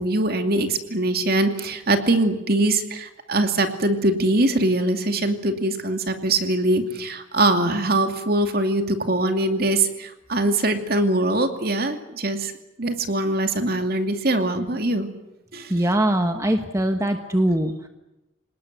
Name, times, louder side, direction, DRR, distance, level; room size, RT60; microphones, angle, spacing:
voice 1, 0.0-12.5 12.8-15.1 15.5-15.7, right 2 dB, 50° right, 6 dB, 2.5 m, -22 dB
voice 2, 15.7-17.9, right 1 dB, 15° right, 6 dB, 1.2 m, -22 dB
28.0 x 19.0 x 9.5 m, 0.95 s
head